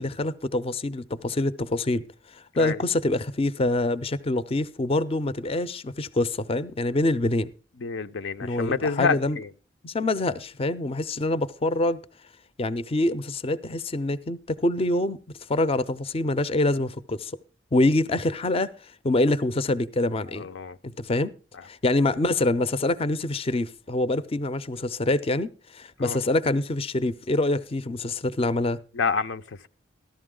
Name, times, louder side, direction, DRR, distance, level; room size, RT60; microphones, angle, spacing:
voice 1, 0.0-2.0 2.3-7.5 8.4-9.4 9.8-12.0 12.6-15.2 15.5-17.3 17.7-20.5 20.8-21.3 21.7-28.8, left 2 dB, 30° left, 0.5 m, -25 dB
voice 2, 7.8-9.5 20.3-20.8 26.0-26.2 28.9-29.7, left 5 dB, 80° left, 0.6 m, -28 dB
14.0 x 12.0 x 3.7 m
head